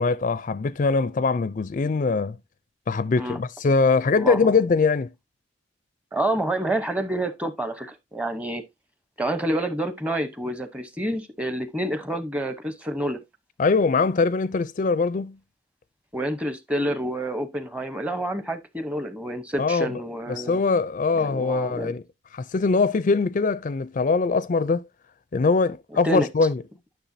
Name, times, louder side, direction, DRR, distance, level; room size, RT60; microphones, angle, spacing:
voice 1, 0.0-2.4 2.9-5.1 13.6-15.4 19.6-19.9 20.3-22.0 22.3-24.8 25.3-26.6, left 4 dB, 45° left, 0.4 m, -22 dB
voice 2, 4.2-4.5 6.1-8.6 9.2-13.2 16.1-20.6 21.2-22.0 26.0-26.3, right 1 dB, 5° right, 0.9 m, -28 dB
10.0 x 6.3 x 2.6 m
head